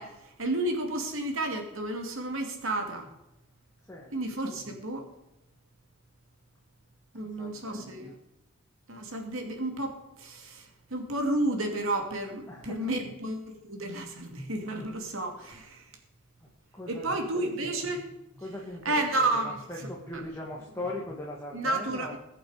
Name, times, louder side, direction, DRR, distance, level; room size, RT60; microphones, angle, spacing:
voice 1, 0.0-3.1 4.1-5.1 7.1-8.1 8.9-15.9 16.9-18.0 18.8-20.2 21.5-22.2, right 2 dB, 75° right, 4 dB, 2.5 m, -32 dB
voice 2, 7.2-8.2 12.5-12.8 16.7-17.9 18.4-22.2, left 1 dB, 15° left, -2 dB, 2.0 m, -40 dB
21.5 x 8.7 x 5.0 m, 0.90 s
head